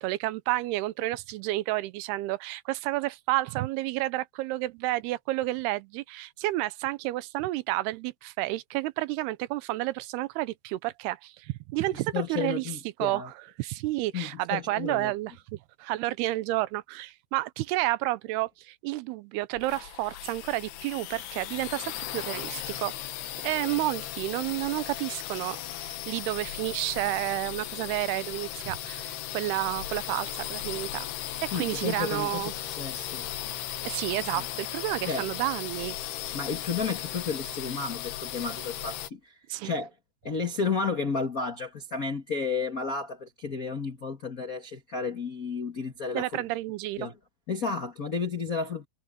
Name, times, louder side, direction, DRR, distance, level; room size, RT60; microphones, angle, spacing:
voice 1, 0.0-12.7 13.0-23.0 23.4-31.1 31.4-32.5 33.8-36.0 39.5-39.8 46.1-47.1, right 17 dB, 85° right, 2.7 m, -31 dB
voice 2, 11.9-13.3 14.1-15.1 31.5-32.4 32.8-33.2 34.3-34.4 35.1-35.3 36.3-39.3 39.6-39.9 40.2-46.4 47.0-47.1 47.5-48.9, left 5 dB, 70° left, 0.8 m, -32 dB
sound 1, 19.6-39.1, left 12 dB, 90° left, 3.4 m, -37 dB
omnidirectional pair, 4.5 m